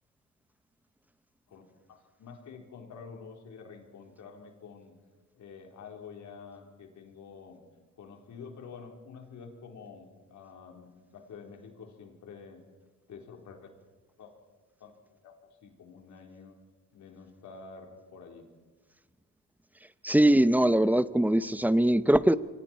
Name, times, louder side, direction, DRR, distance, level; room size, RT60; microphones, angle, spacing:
voice 1, 1.9-4.9 5.3-7.6 8.0-12.6 13.1-13.7 14.2-14.3 14.8-14.9 15.2-15.3 15.6-16.5 16.9-18.5, left 5 dB, 70° left, 3 dB, 4.1 m, -48 dB
voice 2, 20.0-22.4, right 1 dB, 5° right, 14 dB, 0.8 m, -22 dB
27.5 x 24.0 x 4.5 m, 1.4 s
cardioid pair, 90°, 30 cm